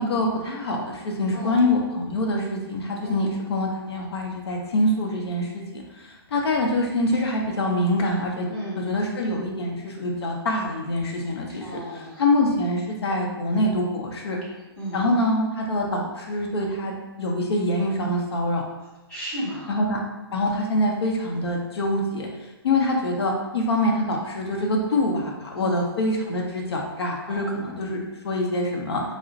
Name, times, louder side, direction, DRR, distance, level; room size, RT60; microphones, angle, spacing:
voice 1, 0.0-8.5 8.8-11.8 12.2-14.4 14.9-18.6 19.7-20.0 20.3-22.3 22.6-29.0, left 1 dB, 75° left, 0 dB, 0.7 m, -25 dB
voice 2, 8.5-8.8 11.6-12.2 14.8-15.0 19.1-19.8 25.5-25.8 27.3-27.4 27.7-27.9, right 1 dB, 5° left, -11 dB, 1.0 m, -34 dB
2.4 x 2.1 x 3.9 m, 1.1 s
hypercardioid pair, 160°, 14 cm